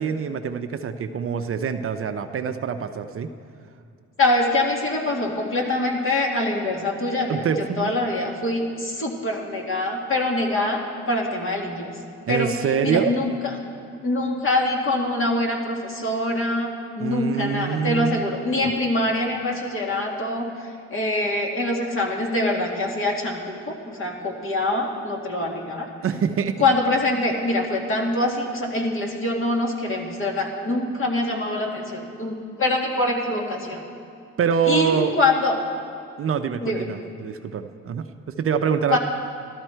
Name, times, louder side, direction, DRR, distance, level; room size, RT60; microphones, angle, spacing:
voice 1, 0.0-3.3 7.3-7.9 12.3-13.1 17.0-18.2 26.0-26.6 34.4-35.1 36.2-39.0, right 7 dB, 45° right, 8 dB, 0.6 m, -25 dB
voice 2, 4.2-7.4 7.8-11.9 12.3-12.5 12.8-13.5 14.0-25.9 26.6-33.8 34.7-35.6 36.6-36.8 38.9-39.0, left 2 dB, 45° left, 0 dB, 2.1 m, -24 dB
13.5 x 13.0 x 4.5 m, 2.5 s
cardioid pair, 90°, 30 cm